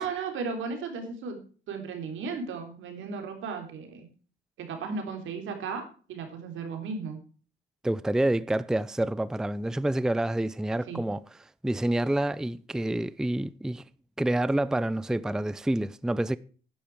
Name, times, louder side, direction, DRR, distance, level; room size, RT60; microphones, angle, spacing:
voice 1, 0.0-1.4 1.7-4.1 4.6-5.8 6.1-7.2 10.9-11.0, right 5 dB, 80° right, 3.5 m, -35 dB
voice 2, 7.8-13.8 14.2-16.4, right 1 dB, 5° right, 0.4 m, -28 dB
10.5 x 10.0 x 4.8 m
cardioid pair, 90°, 20 cm